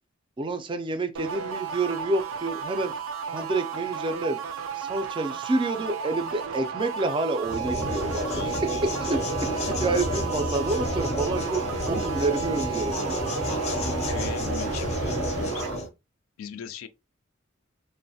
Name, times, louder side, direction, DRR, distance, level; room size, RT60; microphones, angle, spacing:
voice 1, 0.4-2.9 3.3-4.4 4.7-8.2 9.0-9.2 9.8-13.2, right 2 dB, 25° right, 0.3 m, -28 dB
sound 1, 1.2-15.8, right 6 dB, 85° right, 0.4 m, -34 dB
sound 2, 7.4-15.9, equal, 30° left, 0.5 m, -30 dB
voice 2, 8.3-9.6 13.5-15.8 16.4-16.9, left 8 dB, 90° left, 0.3 m, -40 dB
3.0 x 2.0 x 2.7 m
head